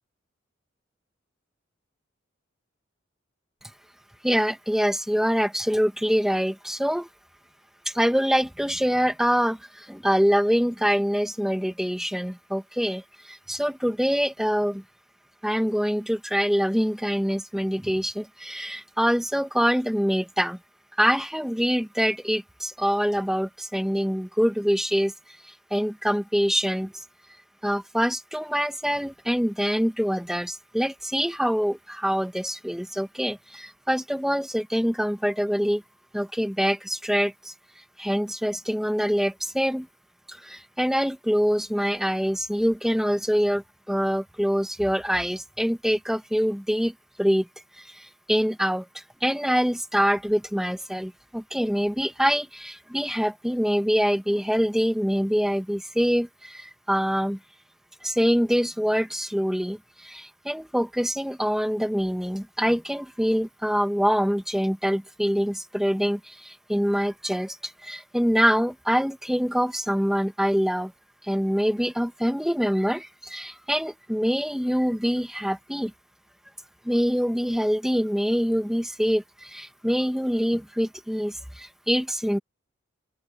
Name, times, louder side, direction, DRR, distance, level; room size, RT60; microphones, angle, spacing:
voice 1, 4.2-7.1 7.8-14.8 15.4-20.6 21.0-25.1 25.4-26.9 27.6-35.8 36.1-37.5 38.0-39.9 40.3-47.5 47.8-57.4 58.0-70.9 71.2-75.9 76.8-82.4, equal, ahead, 1.3 m, -25 dB
open air
head